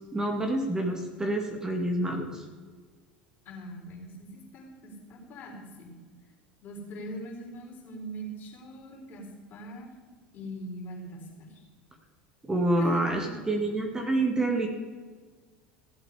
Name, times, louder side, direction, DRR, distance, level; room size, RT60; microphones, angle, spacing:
voice 1, 0.1-2.4 12.4-14.7, right 1 dB, 15° right, 3 dB, 2.0 m, -27 dB
voice 2, 3.5-5.9 6.6-9.2 9.5-9.9 10.3-11.6 12.7-13.4, equal, 45° left, 0 dB, 4.2 m, -41 dB
15.5 x 7.9 x 5.0 m, 1.5 s
hypercardioid pair, 80°, 5 cm